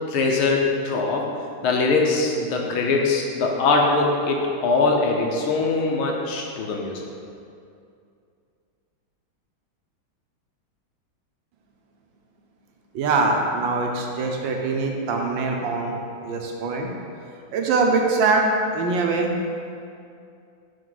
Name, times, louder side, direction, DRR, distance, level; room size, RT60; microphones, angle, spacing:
voice 1, 0.1-1.3 1.6-7.1, left 3 dB, 90° left, 0 dB, 1.7 m, -22 dB
voice 2, 12.9-16.9 17.5-19.3, right 3 dB, 70° right, 1 dB, 1.4 m, -23 dB
10.0 x 3.6 x 3.9 m, 2.4 s
omnidirectional pair, 2.2 m